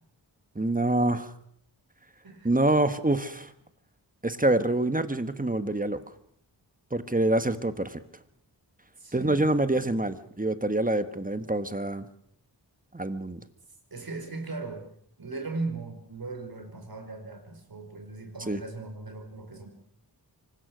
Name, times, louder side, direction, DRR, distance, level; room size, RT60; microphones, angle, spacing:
voice 1, 0.5-1.3 2.4-3.5 4.2-6.0 6.9-8.0 9.1-12.1 12.9-13.4 18.5-18.6, right 2 dB, 20° right, 11 dB, 1.4 m, -26 dB
voice 2, 9.0-9.8 13.9-14.8 15.2-19.7, right 3 dB, 55° right, 5 dB, 5.1 m, -38 dB
24.5 x 20.0 x 6.3 m, 0.67 s
wide cardioid pair, 75°, 43 cm